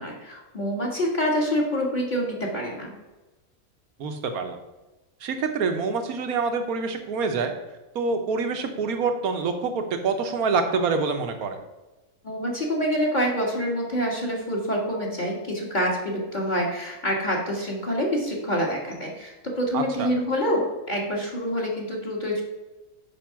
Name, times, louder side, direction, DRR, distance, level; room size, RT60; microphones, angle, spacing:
voice 1, 0.0-2.9 12.2-22.4, equal, 35° left, -2 dB, 1.8 m, -26 dB
voice 2, 4.0-4.6 5.2-7.5 7.9-11.6 19.7-20.1, right 4 dB, 85° right, 6 dB, 1.4 m, -26 dB
7.0 x 5.3 x 5.7 m, 1.1 s
omnidirectional pair, 1.5 m